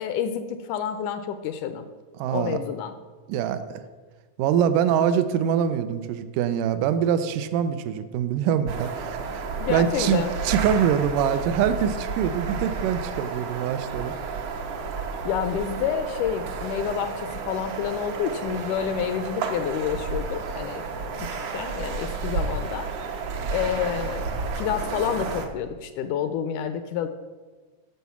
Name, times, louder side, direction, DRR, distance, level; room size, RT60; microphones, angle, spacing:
voice 1, 0.0-1.9 2.3-2.9 9.6-10.3 15.3-20.8 21.2-22.9 23.5-24.3 24.5-27.1, left 8 dB, 80° left, 9 dB, 1.9 m, -29 dB
voice 2, 2.2-2.6 3.3-3.8 4.4-14.1, right 8 dB, 80° right, 11 dB, 2.2 m, -24 dB
sound 1, 8.7-25.5, right 4 dB, 65° right, 1.6 m, -31 dB
11.0 x 4.7 x 7.0 m, 1.4 s
omnidirectional pair, 3.8 m